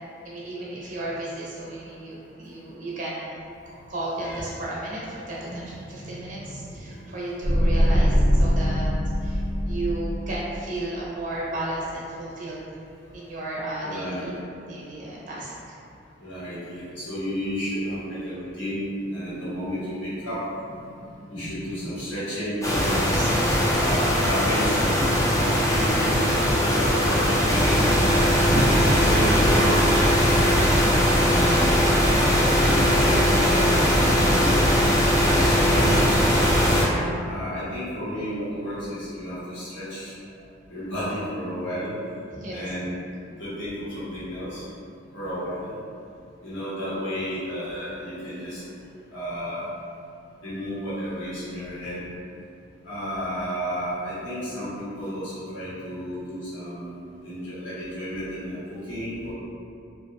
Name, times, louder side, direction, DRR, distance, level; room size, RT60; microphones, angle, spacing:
voice 1, 0.2-3.4 3.9-8.9 9.2-12.7 13.1-14.3 14.7-15.5 23.1-23.9 28.5-28.8 42.3-42.7, right 1 dB, 45° right, -6 dB, 0.7 m, -33 dB
voice 2, 5.4-7.2 13.8-14.3 16.2-18.8 19.1-20.4 20.7-20.9 21.3-23.0 23.7-26.2 26.6-28.3 28.9-31.6 32.5-34.6 35.2-36.3 37.2-40.1 40.7-41.9 42.5-43.0 43.4-44.6 45.1-45.7 46.4-48.6 49.1-49.6 50.4-52.0 52.8-56.9 57.2-59.3, equal, 75° left, -13 dB, 1.3 m, -32 dB
sound 1, 7.4-10.6, equal, 50° left, 1.0 m, -22 dB
sound 2, 22.6-36.9, equal, 15° left, 0.4 m, -20 dB
2.9 x 2.5 x 2.5 m, 2.5 s
head